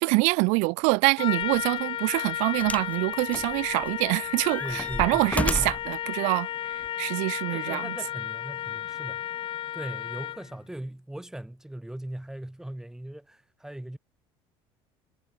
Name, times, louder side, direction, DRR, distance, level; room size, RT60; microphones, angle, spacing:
voice 1, 0.0-8.0, right 30 dB, 80° right, 1.0 m, -25 dB
Trumpet, 1.2-10.5, left 11 dB, 45° left, 2.3 m, -33 dB
sound 1, 1.4-1.6 2.6-3.0 3.3-4.0 4.4-5.9 6.8-6.9, left 2 dB, 10° left, 1.9 m, -32 dB
voice 2, 4.6-5.3 5.5-5.8 7.5-9.3 9.7-14.0, right 1 dB, 5° right, 4.9 m, -39 dB
cardioid pair, 115°, 12 cm